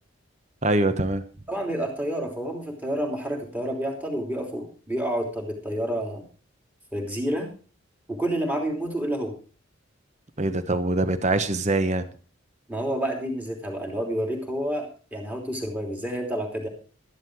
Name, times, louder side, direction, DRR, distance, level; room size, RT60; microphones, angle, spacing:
voice 1, 0.6-1.2 10.4-12.1, right 2 dB, 35° right, 11 dB, 1.1 m, -23 dB
voice 2, 1.5-6.2 6.9-7.5 8.1-9.3 12.7-16.7, right 1 dB, 10° right, 1 dB, 3.1 m, -29 dB
13.0 x 11.5 x 4.7 m, 0.37 s
head